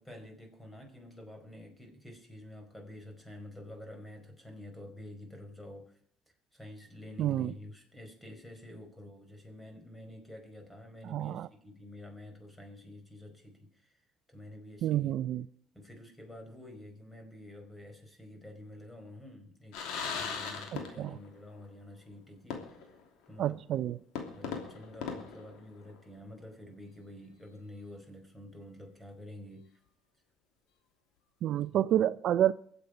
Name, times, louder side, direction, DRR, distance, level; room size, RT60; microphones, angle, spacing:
voice 1, 0.0-6.0 6.5-14.0 14.3-15.1 15.7-22.9 23.3-24.0 24.3-29.7 31.9-32.1, left 1 dB, 10° left, 4.9 m, -49 dB
voice 2, 7.2-7.5 11.0-11.5 14.8-15.4 21.0-21.2 23.4-24.0 31.4-32.5, right 11 dB, 65° right, 0.5 m, -29 dB
sound 1, 19.7-21.3 21.6-21.7 22.5-23.0 23.4-23.5 24.2-26.1, left 6 dB, 80° left, 3.0 m, -39 dB
23.5 x 8.1 x 5.0 m
supercardioid pair, 85°, 0 cm